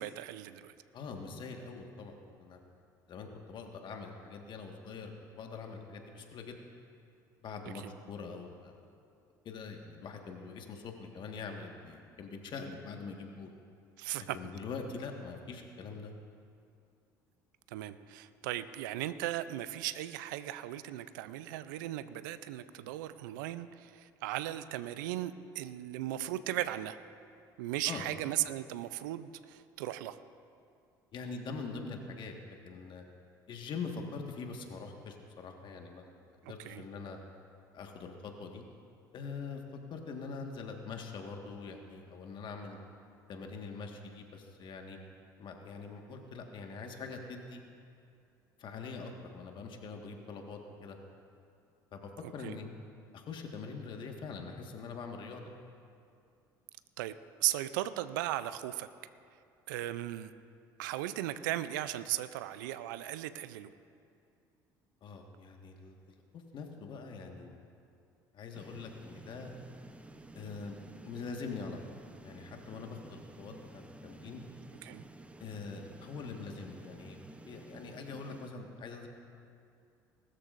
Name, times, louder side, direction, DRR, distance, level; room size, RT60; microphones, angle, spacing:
voice 1, 0.0-0.7 7.8-7.9 14.0-14.4 17.7-27.0 27.6-30.2 36.4-36.8 52.4-52.5 57.0-58.9 59.7-60.3 60.8-63.7 74.8-75.0, right 14 dB, 80° right, 13 dB, 0.5 m, -37 dB
voice 2, 0.9-2.6 3.1-6.6 7.4-8.7 9.4-13.5 14.3-16.1 27.9-28.1 31.1-32.3 32.6-33.0 33.5-37.2 37.7-38.6 39.1-39.6 39.9-42.8 43.3-45.0 45.4-47.6 48.6-51.0 51.9-52.7 53.1-55.5 65.0-66.0 66.3-67.6 68.3-69.5 70.3-70.8 71.0-71.8 72.2-74.4 75.4-79.1, left 4 dB, 50° left, 3 dB, 1.6 m, -43 dB
sound 1, 68.5-78.5, right 2 dB, 10° right, 0.8 m, -52 dB
19.5 x 13.0 x 2.6 m, 2.4 s
hypercardioid pair, 70°, 10 cm